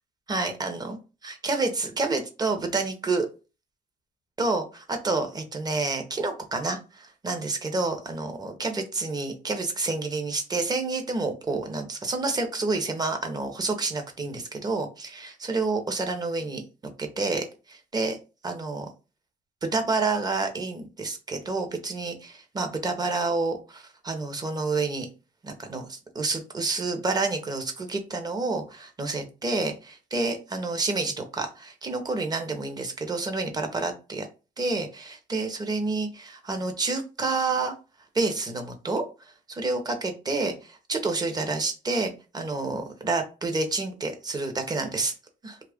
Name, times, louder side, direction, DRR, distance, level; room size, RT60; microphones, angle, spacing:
voice 1, 0.3-1.0 1.2-3.3 4.4-16.6 17.0-18.2 18.4-18.9 19.6-25.1 25.4-34.3 34.6-37.7 38.1-39.0 39.5-45.1 45.4-45.6, right 3 dB, 25° right, 6 dB, 0.7 m, -29 dB
3.0 x 2.4 x 3.4 m, 0.32 s
cardioid pair, 110°, 17 cm